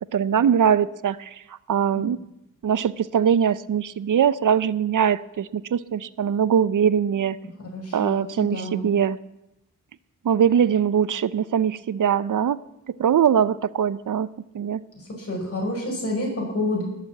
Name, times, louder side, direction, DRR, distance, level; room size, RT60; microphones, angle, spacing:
voice 1, 0.1-2.2 2.6-7.4 7.9-9.2 10.2-12.6 12.9-14.3 14.5-14.8, right 8 dB, 85° right, 18 dB, 0.6 m, -22 dB
voice 2, 7.6-8.8 15.2-16.8, left 1 dB, 50° left, -1 dB, 5.9 m, -28 dB
19.5 x 7.5 x 8.4 m, 0.88 s
wide cardioid pair, 130°, 30 cm